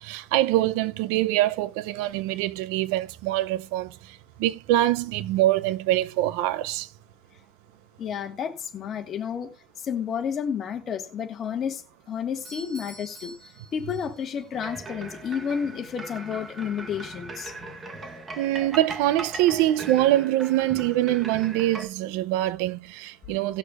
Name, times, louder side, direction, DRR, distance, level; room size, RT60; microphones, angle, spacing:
voice 1, 0.0-3.9 4.4-6.9 18.4-23.6, right 14 dB, 90° right, 0.6 m, -24 dB
voice 2, 8.0-9.5 9.8-11.8 12.1-13.3 13.7-17.8, left 7 dB, 35° left, 1.6 m, -31 dB
Doorbell, 12.5-14.5, right 2 dB, 40° right, 5.3 m, -47 dB
sound 1, 14.5-21.9, right 3 dB, 20° right, 1.2 m, -39 dB
18.5 x 6.5 x 2.5 m
cardioid pair, 165°, 0 cm